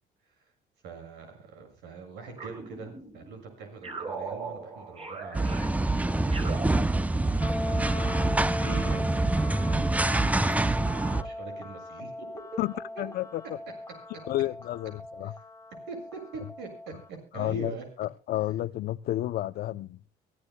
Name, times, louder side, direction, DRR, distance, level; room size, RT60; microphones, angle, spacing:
voice 1, 0.8-6.8 7.1-9.3 9.7-10.3 10.8-12.6 12.9-13.0 15.2-15.3 15.9-17.8, right 4 dB, 85° right, 7.2 m, -43 dB
sound 1, 2.4-3.3 3.8-7.5, right 4 dB, 35° right, 4.3 m, -40 dB
sound 2, 5.3-11.2, right 2 dB, 10° right, 0.6 m, -26 dB
sound 3, 7.4-17.1, left 2 dB, 20° left, 1.4 m, -39 dB
voice 2, 13.0-13.4 14.3-15.3 17.3-20.0, left 14 dB, 65° left, 0.6 m, -31 dB
24.5 x 14.5 x 2.2 m
cardioid pair, 110°, 17 cm